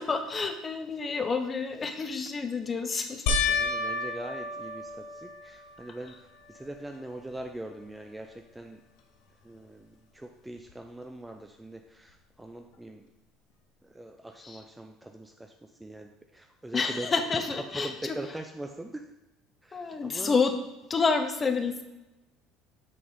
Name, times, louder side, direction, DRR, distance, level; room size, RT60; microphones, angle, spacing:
voice 1, 0.0-3.4 14.4-14.6 16.7-18.2 19.7-20.5 20.9-21.8, left 4 dB, 30° left, 7 dB, 0.9 m, -29 dB
sound 1, 3.3-5.9 6.5-7.0 7.4-7.5 10.7-10.8, left 4 dB, 70° left, 0.8 m, -31 dB
voice 2, 3.5-6.1 6.5-8.8 9.4-13.1 13.8-15.5 15.8-17.1 17.7-19.1 19.6-20.4, right 1 dB, 10° right, 4 dB, 0.5 m, -42 dB
7.4 x 4.0 x 3.9 m, 0.98 s
hypercardioid pair, 75°, 0 cm